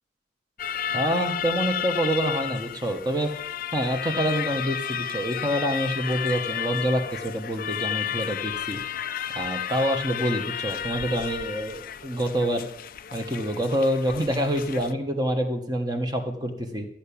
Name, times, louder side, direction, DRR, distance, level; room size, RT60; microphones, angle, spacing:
sound 1, 0.6-14.9, left 9 dB, 50° left, 0.5 m, -32 dB
voice 1, 0.9-3.3 3.7-8.8 9.3-12.7 13.1-16.9, equal, 20° right, 4 dB, 1.3 m, -26 dB
13.5 x 5.9 x 8.6 m, 0.77 s
head